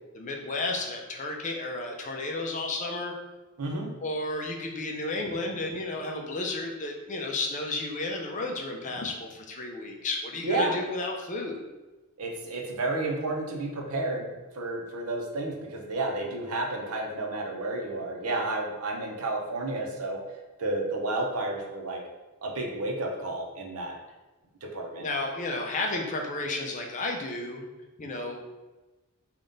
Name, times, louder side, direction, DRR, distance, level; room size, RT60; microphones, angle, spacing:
voice 1, 0.1-3.1 4.0-11.6 25.0-27.6 28.0-28.4, left 2 dB, 35° left, 1 dB, 0.5 m, -32 dB
voice 2, 3.6-3.9 10.4-10.8 12.2-14.3 14.5-20.2 20.6-22.0 22.4-23.9 24.6-25.1, right 2 dB, 85° right, 0 dB, 0.7 m, -31 dB
3.5 x 2.4 x 3.9 m, 1.1 s
head